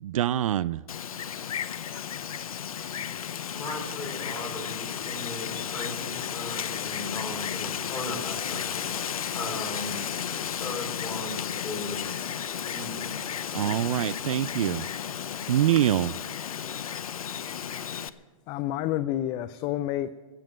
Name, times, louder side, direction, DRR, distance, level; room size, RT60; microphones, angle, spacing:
voice 1, 0.0-0.8 13.5-14.9 15.5-16.2, right 12 dB, 70° right, 0.4 m, -25 dB
Wind, 0.9-18.1, left 8 dB, 90° left, 0.7 m, -33 dB
voice 2, 3.5-13.1 13.4-13.8, left 2 dB, 10° left, 3.3 m, -38 dB
voice 3, 18.5-20.1, left 13 dB, 25° left, 0.4 m, -29 dB
16.5 x 7.7 x 9.0 m
hypercardioid pair, 140°, 18 cm